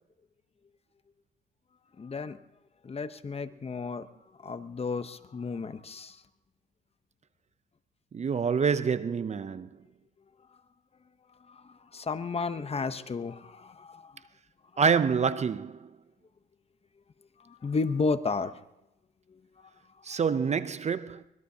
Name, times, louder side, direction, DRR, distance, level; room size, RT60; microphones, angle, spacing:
voice 1, 2.0-2.4 2.8-4.1 4.4-6.2 11.5-14.2 17.4-18.6 19.3-19.7, left 4 dB, 30° left, 0.9 m, -33 dB
voice 2, 8.1-9.7 14.8-15.9 20.0-21.2, right 6 dB, 35° right, 0.6 m, -27 dB
24.5 x 21.0 x 2.8 m
cardioid pair, 90°, 20 cm